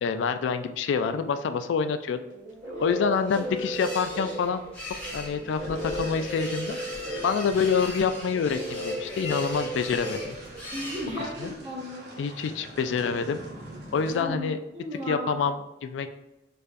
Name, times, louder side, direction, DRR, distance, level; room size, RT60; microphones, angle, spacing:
voice 1, 0.0-2.2 2.8-4.6 5.1-6.8 7.2-10.4 11.4-11.5 12.2-13.4 13.9-14.6 15.1-16.1, left 6 dB, 90° left, 9 dB, 0.3 m, -27 dB
sound 1, 2.3-11.0, right 1 dB, 50° right, 1.1 m, -36 dB
sound 2, 2.7-11.6, left 1 dB, 10° left, 1.0 m, -40 dB
sound 3, 5.4-14.4, right 1 dB, 65° right, 0.8 m, -45 dB
voice 2, 10.7-12.0 14.0-15.3, left 1 dB, 30° right, -7 dB, 0.9 m, -36 dB
4.5 x 2.5 x 2.5 m, 0.96 s
head